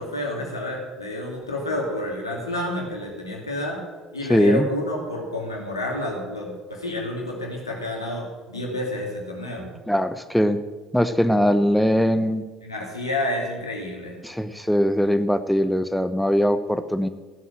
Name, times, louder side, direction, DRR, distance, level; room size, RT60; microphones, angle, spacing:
voice 1, 0.0-3.8 4.1-9.7 12.6-14.1, left 1 dB, 90° left, -1 dB, 2.8 m, -29 dB
voice 2, 4.3-4.7 9.9-10.6 10.9-12.4 14.2-17.1, equal, ahead, 10 dB, 1.0 m, -21 dB
15.0 x 8.5 x 7.5 m, 1.3 s
figure-of-eight pair, 60°, 2 cm